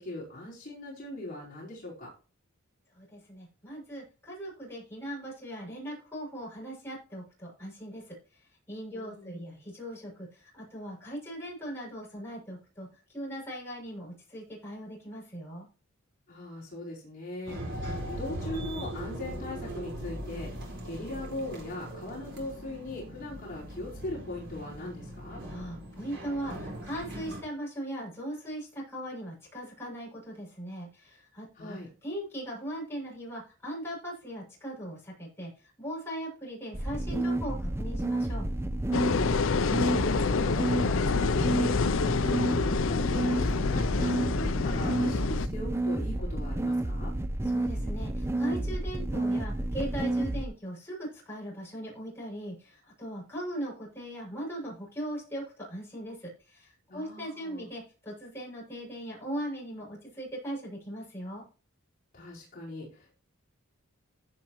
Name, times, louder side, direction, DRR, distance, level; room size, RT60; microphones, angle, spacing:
voice 1, 0.0-2.1 8.9-9.6 16.3-25.4 31.5-31.9 39.4-47.1 56.9-57.7 62.1-63.2, left 1 dB, 40° left, -5 dB, 4.6 m, -40 dB
voice 2, 3.0-8.1 8.7-12.9 13.1-15.7 25.5-35.5 35.8-38.5 47.4-61.4, right 1 dB, 10° left, -4 dB, 6.7 m, -39 dB
sound 1, 17.5-27.4, equal, 55° right, 4.7 m, -40 dB
sound 2, 36.7-50.4, right 1 dB, 10° right, 0.5 m, -30 dB
sound 3, 38.9-45.5, left 4 dB, 65° left, 0.5 m, -27 dB
15.5 x 7.4 x 3.1 m, 0.36 s
head